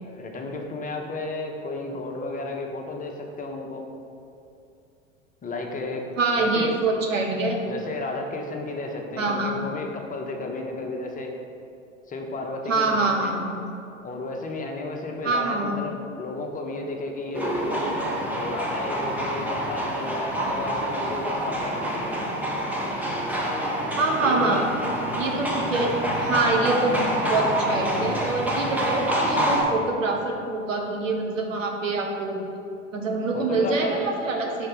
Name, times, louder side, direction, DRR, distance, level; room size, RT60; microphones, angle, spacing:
voice 1, 0.0-3.9 5.4-6.0 6.4-6.8 7.6-11.3 12.1-13.3 14.0-17.9 18.3-22.2 24.2-24.7 33.3-34.0, left 2 dB, 20° left, 2 dB, 0.8 m, -33 dB
voice 2, 6.2-7.6 9.2-9.6 12.7-13.6 15.2-15.8 24.0-24.6 25.2-27.0 27.3-32.4 32.9-34.7, right 3 dB, 85° right, 1 dB, 1.0 m, -25 dB
sound 1, 17.3-29.6, equal, 5° right, 1.0 m, -27 dB
5.4 x 3.9 x 5.6 m, 2.6 s
figure-of-eight pair, 80°, 38 cm